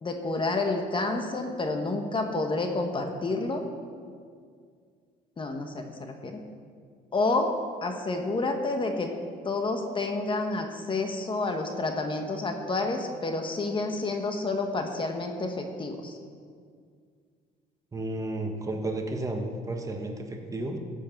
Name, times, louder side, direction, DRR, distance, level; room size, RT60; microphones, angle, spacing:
voice 1, 0.0-3.6 5.4-6.4 7.1-7.5 7.8-9.1 9.4-16.1, left 3 dB, 30° left, 4 dB, 1.2 m, -29 dB
voice 2, 17.9-20.8, right 2 dB, 20° right, 3 dB, 1.4 m, -32 dB
15.0 x 7.6 x 5.9 m, 2.1 s
cardioid pair, 110°, 17 cm